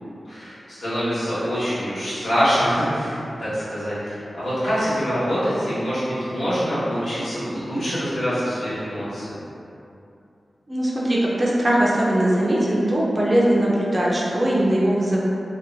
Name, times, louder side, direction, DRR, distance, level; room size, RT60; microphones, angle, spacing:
voice 1, 0.2-9.3, equal, 70° left, -13 dB, 1.2 m, -25 dB
voice 2, 10.7-15.2, right 1 dB, 25° right, -6 dB, 0.3 m, -20 dB
2.6 x 2.1 x 2.6 m, 2.7 s
wide cardioid pair, 130°, 0 cm